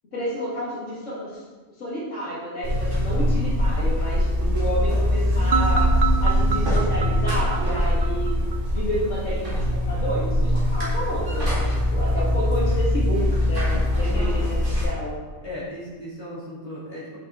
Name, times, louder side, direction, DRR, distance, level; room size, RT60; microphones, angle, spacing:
voice 1, 0.1-1.4 1.8-5.9 6.2-8.4 8.7-14.6 14.8-15.1, equal, 85° left, -6 dB, 2.3 m, -30 dB
Buzz, 2.6-14.8, left 1 dB, 45° right, 2.4 m, -23 dB
sound 1, 5.5-8.6, right 5 dB, 65° right, 0.4 m, -25 dB
voice 2, 15.4-17.2, equal, 30° left, -8 dB, 2.4 m, -36 dB
6.9 x 5.9 x 3.7 m, 1.3 s
omnidirectional pair, 1.3 m